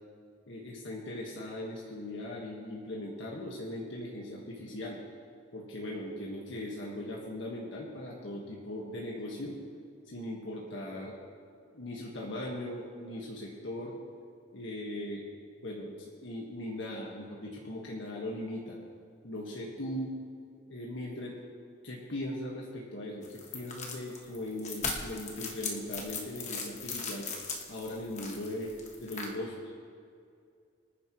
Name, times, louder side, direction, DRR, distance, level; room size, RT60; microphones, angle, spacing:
voice 1, 0.5-5.0 5.5-9.6 10.1-11.2 11.7-14.0 14.5-15.3 15.6-18.8 19.2-20.1 20.7-21.4 21.8-27.3 27.7-28.7 29.0-29.7, left 1 dB, 75° left, -3 dB, 1.6 m, -39 dB
sound 1, 23.2-29.3, left 4 dB, 35° left, 1.4 m, -38 dB
24.5 x 10.0 x 3.1 m, 2.3 s
head